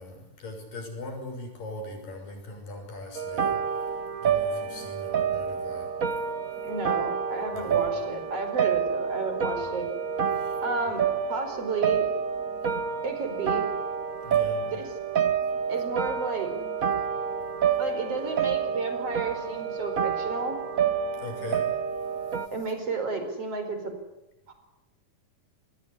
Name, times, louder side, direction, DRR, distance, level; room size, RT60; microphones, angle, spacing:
voice 1, 0.0-5.9 7.5-7.8 9.6-9.7 10.3-10.6 14.2-14.7 21.2-21.7, left 2 dB, 85° left, 4 dB, 8.1 m, -40 dB
sound 1, 3.2-22.5, right 7 dB, 75° right, 0.7 m, -28 dB
voice 2, 6.6-9.9 10.6-11.0 11.3-12.1 13.0-13.7 14.7-14.8 15.7-16.5 17.8-20.6 22.5-23.9 24.5-24.6, right 3 dB, 45° right, 7 dB, 5.5 m, -32 dB
27.5 x 20.0 x 9.9 m, 0.93 s
omnidirectional pair, 3.8 m